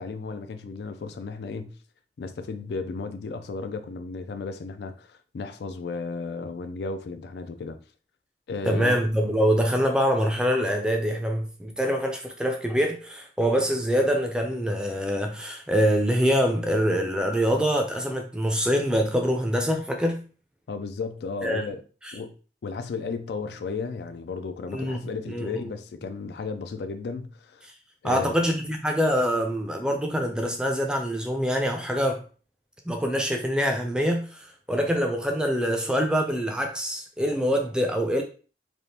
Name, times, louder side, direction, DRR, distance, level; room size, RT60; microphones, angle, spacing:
voice 1, 0.0-1.8 2.2-7.8 8.5-9.0 20.7-21.8 22.1-22.4 22.6-27.7 28.0-28.3, left 4 dB, 70° left, 0.3 m, -34 dB
voice 2, 8.7-20.2 21.4-21.6 22.0-22.1 24.7-25.7 28.0-32.2 32.9-38.2, equal, 5° right, 0.4 m, -25 dB
3.4 x 2.5 x 2.7 m
head